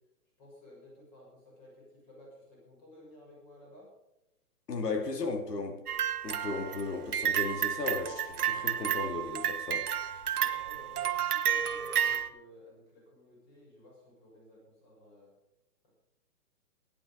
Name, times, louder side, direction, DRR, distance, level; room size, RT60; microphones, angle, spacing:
voice 1, 0.4-3.9 4.8-5.3 10.3-15.4 15.8-15.9, left 1 dB, 25° left, 6.5 m, -54 dB
voice 2, 4.7-5.8 6.2-9.9, left 3 dB, 85° left, 2.8 m, -35 dB
sound 1, 5.9-12.3, right 9 dB, 75° right, 1.5 m, -31 dB
17.0 x 10.5 x 5.2 m
hypercardioid pair, 160°, 47 cm